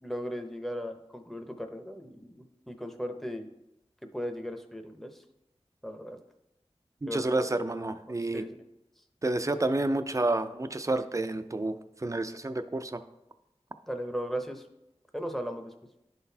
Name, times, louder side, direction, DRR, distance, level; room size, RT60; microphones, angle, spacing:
voice 1, 0.0-3.5 4.1-5.2 5.8-6.2 7.1-7.6 8.1-8.5 13.9-14.7 15.1-15.7, equal, ahead, 6 dB, 0.7 m, -37 dB
voice 2, 7.0-8.4 9.2-11.8 12.0-13.0, right 2 dB, 30° right, 9 dB, 0.4 m, -29 dB
11.0 x 3.9 x 2.8 m, 0.87 s
wide cardioid pair, 50°, 11 cm